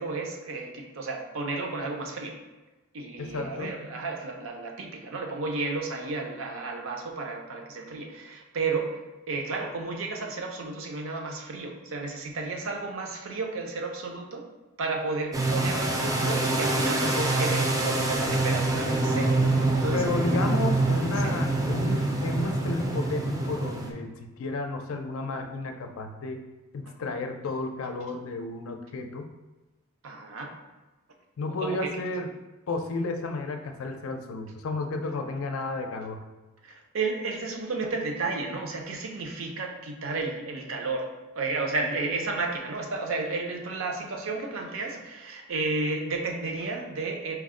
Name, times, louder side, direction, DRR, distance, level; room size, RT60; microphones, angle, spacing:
voice 1, 0.0-2.4 2.9-8.9 9.3-14.4 14.8-20.6 21.2-21.3 30.0-30.5 31.6-31.9 36.6-41.1 41.3-47.3, right 3 dB, 70° right, 2 dB, 0.5 m, -32 dB
voice 2, 3.2-3.7 19.9-26.4 26.7-29.3 31.4-32.3 32.7-36.2, left 2 dB, 75° left, 5 dB, 0.4 m, -32 dB
sound 1, 15.3-23.9, right 2 dB, 15° right, 0.4 m, -25 dB
4.5 x 2.1 x 3.6 m, 1.1 s
head